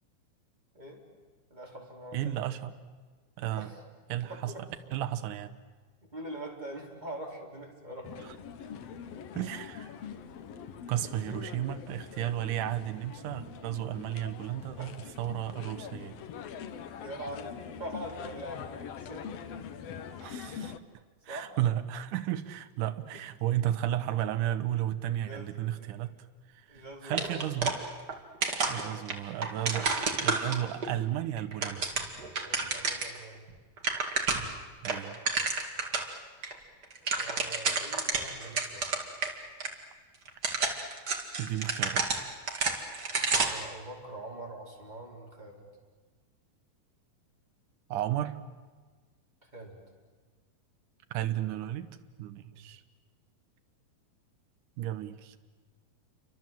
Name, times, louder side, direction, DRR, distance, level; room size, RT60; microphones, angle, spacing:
voice 1, 1.5-2.5 3.6-3.8 4.2-4.6 6.0-8.1 11.3-11.4 14.8-15.0 15.5-15.6 17.0-19.4 21.3-21.5 25.2-26.1 26.7-27.6 28.6-29.1 32.4-33.5 37.0-38.9 43.3-45.7 49.5-49.8 52.5-52.7, right 1 dB, 10° right, -1 dB, 4.4 m, -44 dB
voice 2, 2.1-2.7 3.4-3.7 4.1-4.5 4.9-5.5 9.4-9.9 10.9-14.9 15.2-16.2 20.2-20.8 21.3-26.1 26.5-27.8 28.7-29.9 30.2-31.8 34.8-35.2 41.4-42.3 47.9-48.4 51.1-51.9 52.2-52.8 54.8-55.4, right 12 dB, 65° right, 9 dB, 2.3 m, -33 dB
sound 1, 8.0-20.8, left 7 dB, 80° left, 1.4 m, -43 dB
sound 2, 27.1-28.2 28.4-30.9 31.4-33.2 33.5-33.6 33.8-34.6 34.8-36.1 36.4-36.5 36.8-39.3 39.6-39.7 40.3-43.7, right 4 dB, 35° right, 1.9 m, -30 dB
29.0 x 25.0 x 7.7 m, 1.4 s
omnidirectional pair, 4.5 m